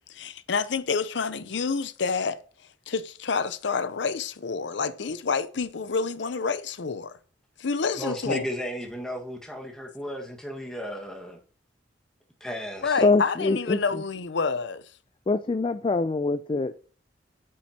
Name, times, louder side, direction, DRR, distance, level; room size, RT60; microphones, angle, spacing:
voice 1, 0.1-2.4 2.9-7.1 7.6-8.4 12.8-14.8, left 5 dB, 70° left, 0.6 m, -28 dB
voice 2, 8.0-11.4 12.4-13.0, equal, 5° left, 1.6 m, -34 dB
voice 3, 13.0-14.0 15.3-16.8, left 3 dB, 30° left, 0.3 m, -24 dB
8.5 x 7.5 x 2.8 m
head